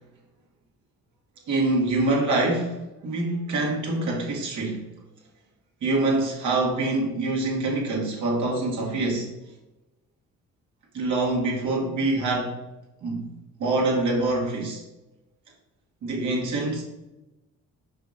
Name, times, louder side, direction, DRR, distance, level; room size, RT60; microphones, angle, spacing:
voice 1, 1.5-4.9 5.8-9.4 10.9-12.6 13.0-13.3 13.6-14.8 16.0-16.8, right 2 dB, 75° right, 2.0 m, -25 dB
5.4 x 5.1 x 4.1 m
cardioid pair, 90°, 30 cm